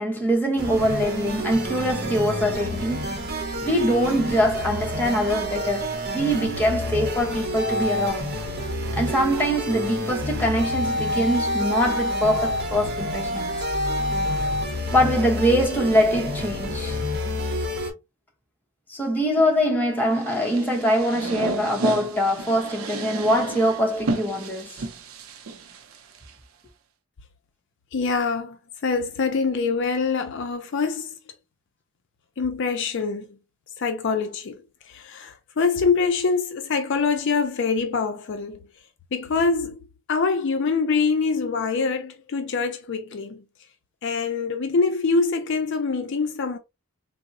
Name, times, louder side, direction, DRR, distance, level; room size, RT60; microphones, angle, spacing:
voice 1, 0.0-3.2 3.6-8.4 8.9-13.5 14.9-17.0 18.9-24.7, equal, 10° left, 0.7 m, -23 dB
sound 1, 0.6-17.9, left 1 dB, 50° right, 0.9 m, -28 dB
sound 2, 20.2-26.3, right 3 dB, 75° right, 0.5 m, -32 dB
voice 2, 27.9-31.2 32.4-33.3 33.8-34.6 34.9-38.6 39.1-39.8 40.1-43.4 44.0-46.6, left 4 dB, 55° left, 0.4 m, -24 dB
3.7 x 2.0 x 2.5 m
head